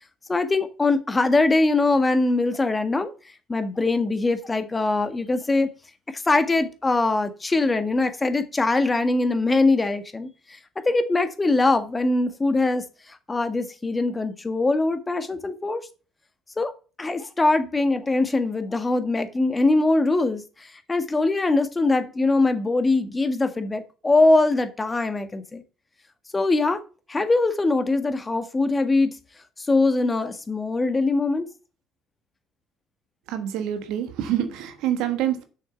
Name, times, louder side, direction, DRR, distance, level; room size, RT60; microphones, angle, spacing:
voice 1, 0.3-3.1 3.5-5.7 6.1-10.6 10.9-12.8 13.3-15.9 16.6-16.7 17.0-25.6 26.3-26.8 27.1-29.2 29.6-31.5, left 2 dB, 20° left, 1.7 m, -22 dB
voice 2, 33.3-35.4, right 11 dB, 65° right, 1.3 m, -26 dB
7.0 x 6.4 x 6.7 m
hypercardioid pair, 60°, 0 cm